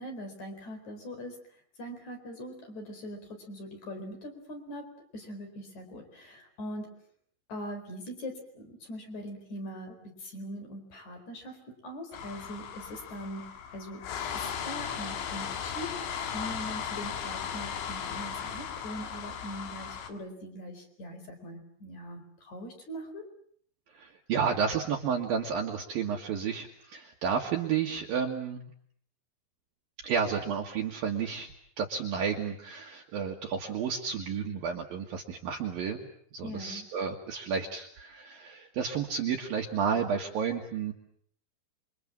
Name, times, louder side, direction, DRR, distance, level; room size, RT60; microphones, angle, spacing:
voice 1, 0.0-1.4 1.8-6.9 7.5-13.4 13.7-14.0 14.3-16.0 16.3-23.2 36.4-36.9, equal, 40° left, 5 dB, 5.5 m, -41 dB
sound 1, 12.1-20.1, left 8 dB, 85° left, 4.3 m, -37 dB
voice 2, 23.9-28.7 30.0-31.5 31.8-40.9, right 6 dB, 60° right, 0 dB, 3.1 m, -31 dB
27.5 x 24.5 x 7.5 m, 0.64 s
omnidirectional pair, 5.1 m